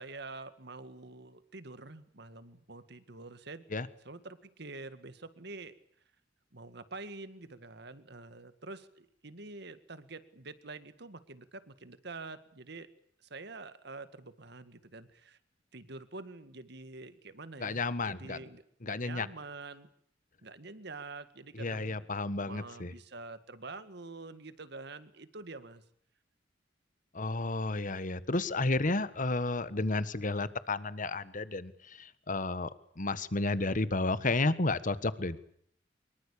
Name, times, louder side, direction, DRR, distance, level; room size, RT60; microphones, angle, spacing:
voice 1, 0.0-3.6 4.0-5.7 6.5-12.9 13.2-15.4 15.7-19.9 20.4-22.1 22.5-25.8, right 3 dB, 65° right, 12 dB, 2.0 m, -46 dB
voice 2, 17.6-18.4 18.8-19.3 21.6-22.9 27.1-32.7 33.0-35.4, left 2 dB, 45° left, 15 dB, 1.4 m, -32 dB
24.5 x 22.5 x 8.5 m, 0.66 s
head